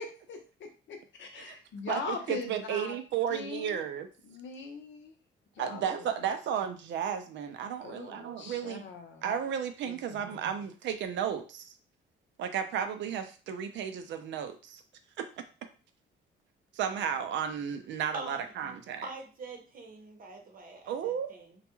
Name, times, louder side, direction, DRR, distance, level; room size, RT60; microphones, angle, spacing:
voice 1, 0.0-2.9 3.3-3.9 4.2-5.1 5.6-6.1 7.8-9.3 9.9-10.4, left 4 dB, 70° left, 0.7 m, -41 dB
voice 2, 1.9-4.1 5.6-8.8 9.2-11.7 12.4-14.8 15.2-15.3 16.7-19.1 20.9-21.4, right 8 dB, 70° right, 0.4 m, -33 dB
voice 3, 18.1-21.6, right 3 dB, 45° right, 0.7 m, -45 dB
2.3 x 2.2 x 2.9 m
cardioid pair, 90°, 20 cm